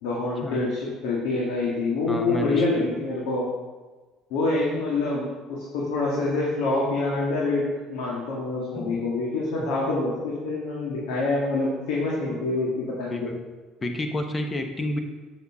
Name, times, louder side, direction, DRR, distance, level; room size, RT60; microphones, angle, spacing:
voice 1, 0.0-3.5 4.3-13.3, left 2 dB, 75° left, -5 dB, 1.8 m, -26 dB
voice 2, 2.1-2.9 8.7-9.0 9.6-9.7 13.1-13.4 13.8-15.0, left 1 dB, 25° left, 5 dB, 1.2 m, -30 dB
7.8 x 7.0 x 3.7 m, 1.3 s
hypercardioid pair, 70°, 0 cm